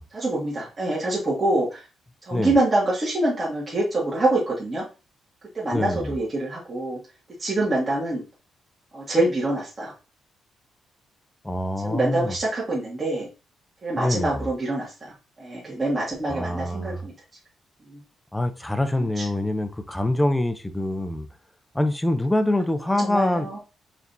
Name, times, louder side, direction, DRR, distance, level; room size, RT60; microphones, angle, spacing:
voice 1, 0.1-1.8 2.3-4.8 5.5-7.0 7.4-8.2 8.9-9.9 11.8-13.3 13.8-15.1 15.4-17.1 17.9-18.0 19.2-19.3 23.0-23.6, right 2 dB, 30° right, 1.5 m, -25 dB
voice 2, 5.7-6.1 11.4-12.4 13.9-14.4 16.3-17.1 18.3-21.3 21.7-23.6, left 1 dB, 5° left, 0.5 m, -25 dB
4.9 x 3.4 x 2.6 m
cardioid pair, 120°, 0 cm